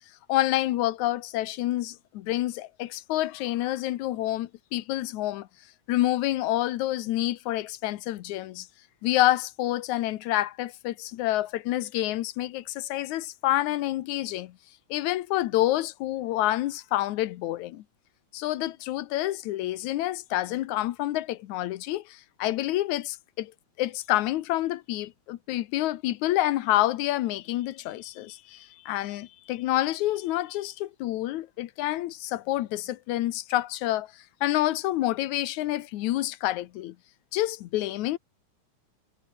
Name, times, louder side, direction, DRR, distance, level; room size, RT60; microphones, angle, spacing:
voice 1, 0.3-5.5 5.9-8.7 9.0-14.6 14.9-17.8 18.3-23.5 23.8-34.1 34.4-37.0 37.3-38.2, left 15 dB, 80° left, 2.3 m, -28 dB
omnidirectional pair, 3.3 m